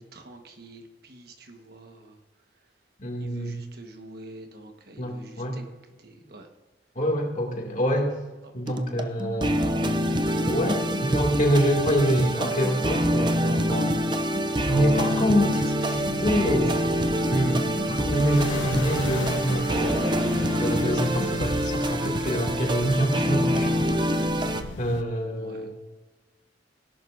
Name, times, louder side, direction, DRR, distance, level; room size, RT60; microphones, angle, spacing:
voice 1, 0.0-2.2 3.2-5.6 6.0-6.5 14.8-15.2 15.6-17.3 25.3-25.7, right 2 dB, 60° right, 5 dB, 1.3 m, -47 dB
voice 2, 3.0-3.6 5.0-5.6 7.0-8.2 8.5-9.8 10.4-14.1 14.7-16.7 17.3-20.1 20.6-23.9 24.8-25.7, equal, 45° left, 0 dB, 2.3 m, -26 dB
sound 1, 8.7-24.6, equal, 25° right, 0.7 m, -26 dB
sound 2, 15.9-25.0, left 3 dB, 85° left, 0.6 m, -36 dB
18.0 x 11.0 x 2.6 m, 1.2 s
head